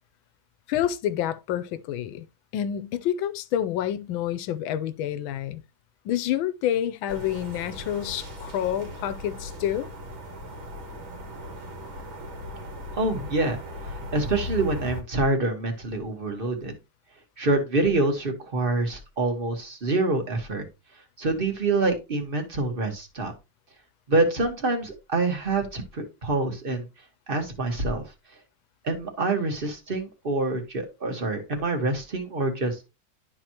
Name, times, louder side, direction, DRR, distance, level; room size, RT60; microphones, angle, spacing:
voice 1, 0.7-2.2 2.5-5.6 6.0-9.9, left 11 dB, 90° left, 1.5 m, -28 dB
sound 1, 7.1-15.0, left 1 dB, 80° right, 2.5 m, -38 dB
voice 2, 13.0-13.6 14.1-16.7 17.4-20.6 21.2-23.3 24.1-26.9 27.3-28.0 28.8-32.9, right 2 dB, 30° right, 1.5 m, -26 dB
11.5 x 4.6 x 2.9 m
omnidirectional pair, 2.1 m